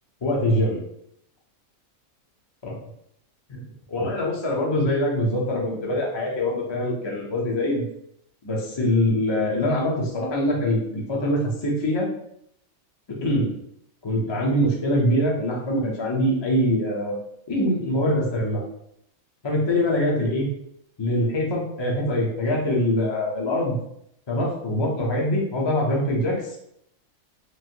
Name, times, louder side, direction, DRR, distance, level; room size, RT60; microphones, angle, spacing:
voice 1, 0.2-0.8 2.6-2.8 3.5-3.6 3.9-7.8 8.4-12.1 13.2-13.5 14.0-17.2 17.5-18.6 19.4-20.5 21.0-23.7 24.3-26.4, left 1 dB, 40° left, -2 dB, 0.4 m, -23 dB
3.1 x 2.5 x 2.8 m, 0.73 s
omnidirectional pair, 1.4 m